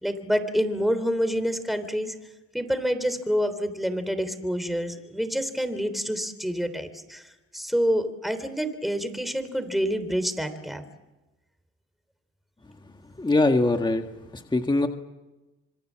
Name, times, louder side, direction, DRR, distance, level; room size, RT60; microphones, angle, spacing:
voice 1, 0.0-2.1 2.5-7.2 7.5-10.8, equal, ahead, 10 dB, 3.5 m, -27 dB
voice 2, 13.2-14.1 14.3-14.9, left 2 dB, 15° left, 5 dB, 1.7 m, -22 dB
26.5 x 24.0 x 7.6 m, 1.1 s
cardioid pair, 90°, 30 cm